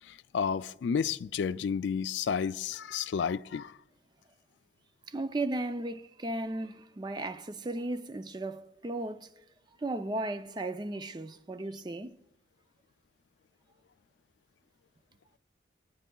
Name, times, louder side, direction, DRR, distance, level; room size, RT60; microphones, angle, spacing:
voice 1, 0.3-3.7, left 6 dB, 75° left, 0.3 m, -31 dB
voice 2, 5.1-9.3 9.8-12.2, right 2 dB, 25° right, 0.4 m, -35 dB
23.0 x 9.2 x 2.3 m
head